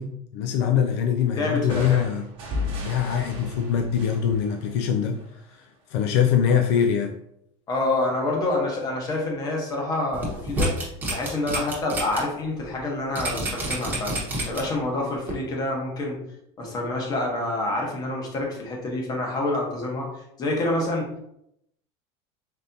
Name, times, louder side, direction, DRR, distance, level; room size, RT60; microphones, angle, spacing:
voice 1, 0.0-2.2 2.8-7.2, left 8 dB, 65° left, 4 dB, 0.4 m, -23 dB
voice 2, 1.4-2.1 7.7-16.2 16.6-21.1, left 2 dB, 25° left, -1 dB, 1.0 m, -27 dB
sound 1, 1.7-5.4, left 2 dB, 35° right, 1.1 m, -35 dB
sound 2, 10.1-12.2 12.6-12.7 13.2-14.8 15.3-15.4, right 1 dB, 10° right, 1.0 m, -28 dB
4.1 x 3.4 x 2.7 m, 0.77 s
cardioid pair, 165°, 15 cm